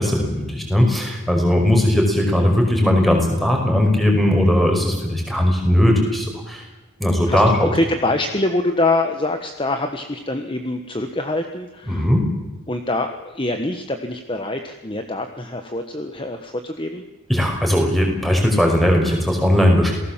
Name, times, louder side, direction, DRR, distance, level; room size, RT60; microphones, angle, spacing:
voice 1, 0.0-6.6 7.0-7.7 11.8-12.3 17.3-19.9, left 1 dB, ahead, 1 dB, 5.3 m, -18 dB
voice 2, 7.3-12.1 12.7-17.0, left 2 dB, 25° left, 6 dB, 1.4 m, -24 dB
28.0 x 19.0 x 7.5 m, 1.1 s
head